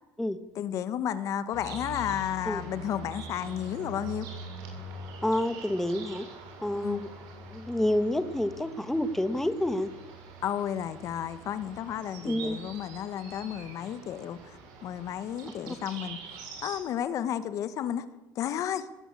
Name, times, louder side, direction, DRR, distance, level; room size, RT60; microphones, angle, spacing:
voice 1, 0.5-4.3 6.7-7.0 10.4-16.2 16.6-18.0 18.3-18.9, left 10 dB, 55° left, 13 dB, 1.5 m, -32 dB
sound 1, 1.5-16.8, right 3 dB, 75° right, 7.3 m, -44 dB
voice 2, 5.2-6.3 6.6-7.1 7.5-9.9 12.2-12.6 15.7-15.8, left 1 dB, 5° left, 10 dB, 1.6 m, -28 dB
20.0 x 17.5 x 8.6 m, 1.1 s
cardioid pair, 115°, 7 cm